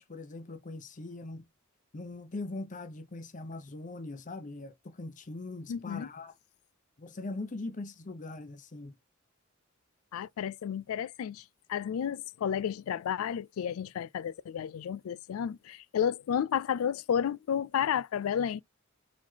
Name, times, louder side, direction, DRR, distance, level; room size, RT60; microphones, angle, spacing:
voice 1, 0.0-1.4 1.9-6.3 7.0-8.9, left 2 dB, 40° left, 0.7 m, -41 dB
voice 2, 5.7-6.1 10.1-11.4 11.7-18.6, left 8 dB, 90° left, 0.3 m, -32 dB
4.3 x 4.2 x 2.8 m
head